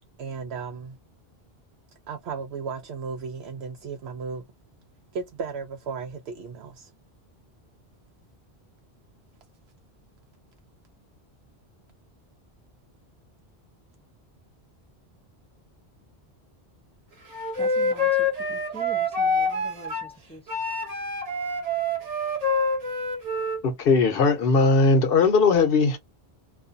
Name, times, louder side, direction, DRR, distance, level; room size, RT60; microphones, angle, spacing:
voice 1, 0.2-1.0 2.1-4.4 5.1-6.9, right 5 dB, 75° right, 0.8 m, -35 dB
Wind instrument woodwind instrument, 17.3-20.1 20.5-23.6, left 2 dB, 40° right, 0.7 m, -26 dB
voice 2, 17.6-20.4, right 2 dB, 10° left, 0.4 m, -44 dB
voice 3, 23.6-26.0, left 4 dB, 65° left, 0.9 m, -19 dB
2.4 x 2.3 x 2.6 m
omnidirectional pair, 1.1 m